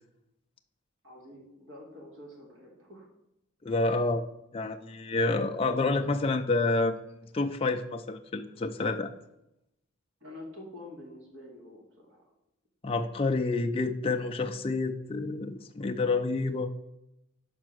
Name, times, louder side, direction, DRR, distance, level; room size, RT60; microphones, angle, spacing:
voice 1, 1.0-3.1 10.2-12.3, left 1 dB, 65° right, -2 dB, 2.4 m, -47 dB
voice 2, 3.6-4.3 4.5-7.0 7.3-9.1 12.8-16.7, left 3 dB, 25° left, 4 dB, 0.3 m, -28 dB
6.0 x 4.5 x 6.2 m, 0.85 s
head